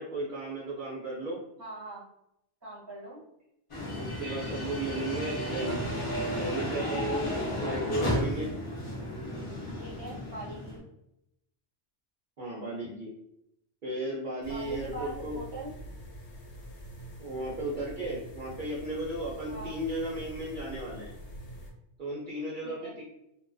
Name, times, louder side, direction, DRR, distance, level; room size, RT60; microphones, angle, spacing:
voice 1, 0.0-1.4 3.9-5.8 6.3-7.3 7.6-8.5 12.4-13.1 13.8-15.4 17.2-21.1 22.0-23.0, right 1 dB, 50° right, -7 dB, 0.7 m, -35 dB
voice 2, 1.6-2.0 2.6-3.2 7.3-7.6 9.8-10.8 14.4-15.7 19.5-19.8 22.6-23.0, right 1 dB, 20° right, -6 dB, 0.9 m, -42 dB
sound 1, 3.7-10.8, equal, 35° left, 0.5 m, -33 dB
sound 2, 14.4-21.7, equal, 70° left, 0.9 m, -45 dB
2.4 x 2.2 x 2.3 m, 0.81 s
omnidirectional pair, 1.3 m